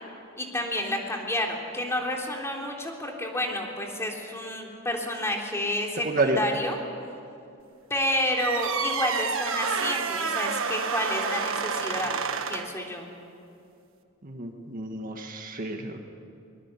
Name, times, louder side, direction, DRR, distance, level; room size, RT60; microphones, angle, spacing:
voice 1, 0.4-6.8 7.9-12.2 12.5-13.1, left 1 dB, 15° left, 0 dB, 3.4 m, -30 dB
voice 2, 6.1-6.4 14.2-16.0, right 2 dB, 45° right, 4 dB, 1.7 m, -29 dB
sound 1, 8.3-12.8, right 5 dB, 75° right, 1.5 m, -29 dB
23.5 x 21.0 x 8.5 m, 2.6 s
head